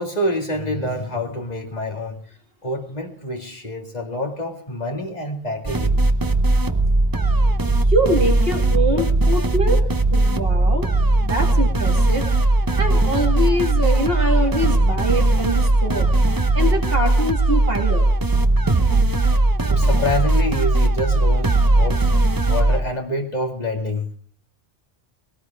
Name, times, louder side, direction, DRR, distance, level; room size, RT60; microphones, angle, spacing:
voice 1, 0.0-2.2 2.6-6.0 19.7-22.1 22.5-24.1, left 1 dB, 40° left, 2 dB, 2.5 m, -27 dB
sound 1, 5.6-22.8, right 2 dB, 20° right, 0.7 m, -18 dB
voice 2, 7.9-9.8 10.1-10.9 11.2-12.3 12.8-16.1 16.5-18.1, right 1 dB, 60° right, 3 dB, 2.6 m, -24 dB
19.5 x 17.5 x 3.5 m, 0.43 s
omnidirectional pair, 1.1 m